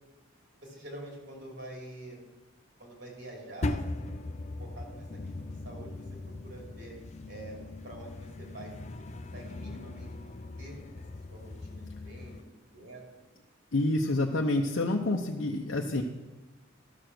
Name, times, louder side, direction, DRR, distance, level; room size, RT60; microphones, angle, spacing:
voice 1, 0.6-2.2 2.8-4.1 4.6-5.1 5.4-6.0 6.4-7.0 7.3-8.7 9.1-10.8 11.3-13.0, right 1 dB, 60° right, -1 dB, 3.0 m, -46 dB
sound 1, 3.6-12.4, left 2 dB, 35° left, 0.4 m, -39 dB
voice 2, 13.7-16.0, left 2 dB, 70° left, 1 dB, 0.7 m, -28 dB
12.5 x 6.9 x 6.1 m, 1.2 s
head